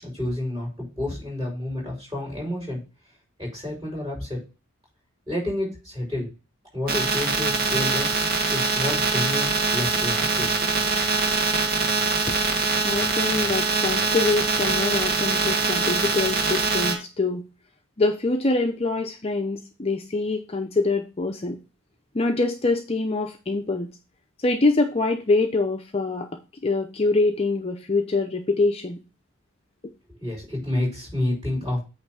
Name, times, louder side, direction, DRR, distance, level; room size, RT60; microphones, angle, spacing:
voice 1, 0.0-2.8 3.4-4.4 5.3-6.3 6.7-8.1 8.5-10.7 30.2-31.8, left 1 dB, 20° right, -2 dB, 5.3 m, -29 dB
sound 1, 6.9-16.9, right 4 dB, 45° right, 1.7 m, -23 dB
voice 2, 12.8-17.5 18.0-21.6 22.1-23.9 24.4-26.3 26.6-29.0, left 3 dB, 30° left, 4 dB, 0.6 m, -24 dB
8.7 x 3.2 x 6.2 m, 0.31 s
head